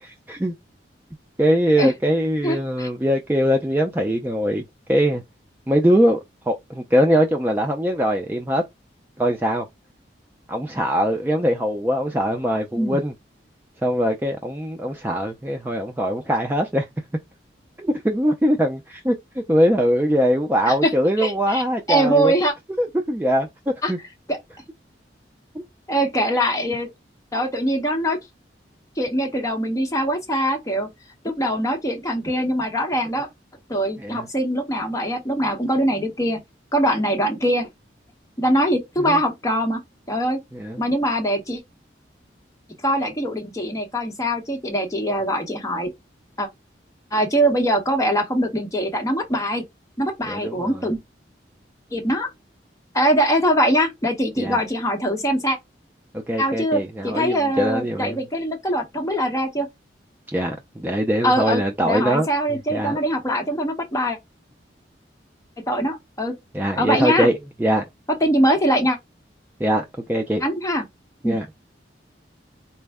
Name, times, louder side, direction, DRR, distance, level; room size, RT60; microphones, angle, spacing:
voice 1, 0.0-0.5 1.4-4.6 4.9-5.2 5.7-6.2 6.5-8.6 9.2-9.7 10.5-13.1 13.8-16.8 17.8-19.1 19.5-22.3 22.8-23.5 23.9-24.0 25.5-25.6 34.0-34.2 39.0-39.2 40.5-40.8 50.2-50.9 54.4-54.6 56.3-58.2 60.3-62.3 62.7-63.0 66.5-67.8 69.6-70.4 71.2-71.5, equal, 10° right, 0.3 m, -22 dB
voice 2, 2.4-2.9 12.8-13.0 20.7-20.9 21.2-21.6 21.9-22.5 23.8-23.9 24.3-24.4 25.9-26.9 27.3-28.2 29.0-30.9 31.2-33.3 33.7-36.4 36.7-37.7 38.4-39.8 40.1-40.4 40.8-41.6 42.8-45.9 46.4-46.5 47.1-49.6 50.0-51.0 51.9-52.3 52.9-55.6 56.4-59.7 61.2-61.6 61.8-64.2 65.7-66.3 66.8-67.3 68.2-69.0 70.4-70.8 71.2-71.4, equal, 20° left, 0.8 m, -22 dB
4.2 x 2.0 x 3.4 m
head